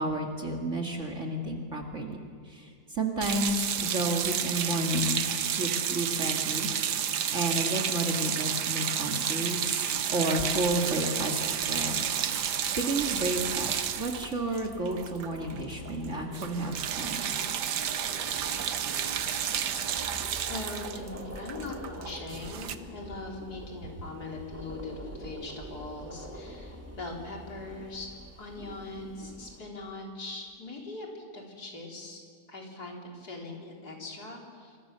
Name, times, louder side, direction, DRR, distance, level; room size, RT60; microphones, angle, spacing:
voice 1, 0.0-2.2 2.5-6.7 7.0-12.0 12.3-12.5 12.8-17.3, right 1 dB, 40° right, 2 dB, 2.6 m, -31 dB
sound 1, 3.2-15.6 15.9-16.1 16.3-22.8, right 9 dB, 70° right, 1.6 m, -31 dB
sound 2, 11.6-29.6, equal, 10° right, 3.5 m, -46 dB
voice 2, 20.5-28.1 28.4-32.2 32.5-34.8, left 2 dB, 60° left, 0 dB, 4.5 m, -41 dB
27.5 x 25.0 x 6.9 m, 2.2 s
omnidirectional pair, 1.9 m